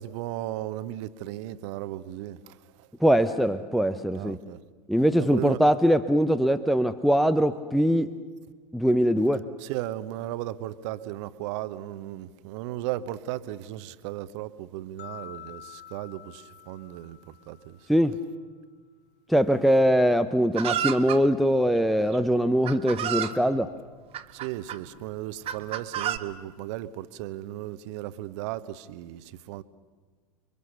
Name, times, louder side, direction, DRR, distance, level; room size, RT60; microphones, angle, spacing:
voice 1, 0.0-2.9 4.1-4.6 5.2-5.6 9.6-17.8 24.3-29.6, right 14 dB, 45° right, 1.2 m, -36 dB
voice 2, 3.0-4.4 4.9-8.1 8.7-9.5 17.9-18.2 19.3-23.7, equal, ahead, 0.7 m, -22 dB
sound 1, 15.0-18.1, left 11 dB, 35° left, 2.8 m, -47 dB
Chicken rooster, 20.6-21.2 22.1-22.2 22.7-23.4 24.1-24.8 25.5-26.2, right 10 dB, 30° right, 1.5 m, -30 dB
29.0 x 24.0 x 6.8 m
figure-of-eight pair, 90°, 20 cm